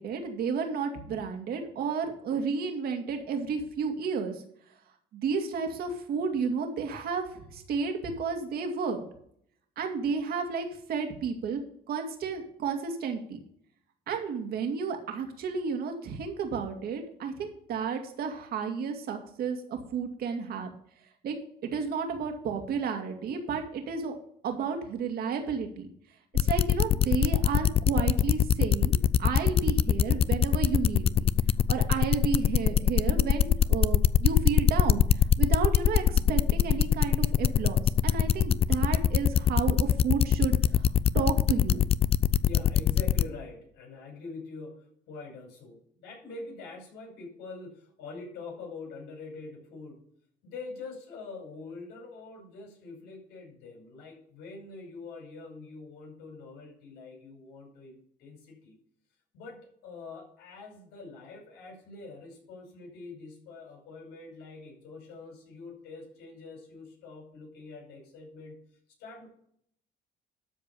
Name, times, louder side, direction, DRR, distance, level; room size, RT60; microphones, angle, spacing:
voice 1, 0.0-4.4 5.1-9.1 9.8-11.6 11.9-13.4 14.1-20.7 21.2-21.4 21.7-24.2 24.4-25.9 26.4-31.3 31.7-41.8, right 5 dB, 65° right, 4 dB, 2.3 m, -32 dB
sound 1, 26.4-43.2, left 9 dB, 35° left, 0.4 m, -22 dB
voice 2, 42.4-50.0 50.4-58.8 59.3-68.6 69.0-69.3, left 4 dB, 85° left, 1 dB, 5.2 m, -44 dB
12.5 x 4.8 x 6.8 m, 0.65 s
cardioid pair, 110°, 17 cm